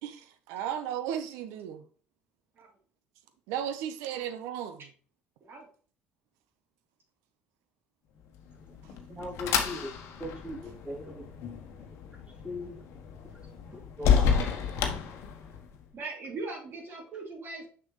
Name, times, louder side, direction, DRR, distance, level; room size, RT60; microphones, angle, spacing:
voice 1, 0.0-1.8 3.5-4.9 8.8-8.9, right 9 dB, 75° right, 0.9 m, -35 dB
sound 1, 8.4-15.8, left 7 dB, 65° left, 1.1 m, -31 dB
voice 2, 9.1-9.9 10.2-11.4 12.4-12.8 13.7-15.1, left 1 dB, 20° right, 3.2 m, -40 dB
voice 3, 15.9-17.7, right 3 dB, 50° right, 3.3 m, -39 dB
6.4 x 6.0 x 3.1 m
hypercardioid pair, 60°, 5 cm